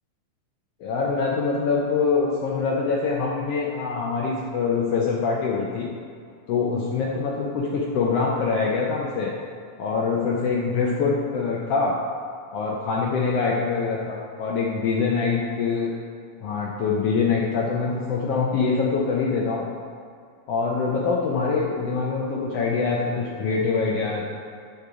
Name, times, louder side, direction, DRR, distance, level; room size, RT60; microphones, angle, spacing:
voice 1, 0.8-5.9 6.5-9.3 9.8-11.9 12.5-15.9 16.4-19.7 20.5-24.2, left 4 dB, 80° left, -2 dB, 1.4 m, -24 dB
6.7 x 6.5 x 4.8 m, 2.2 s
omnidirectional pair, 3.6 m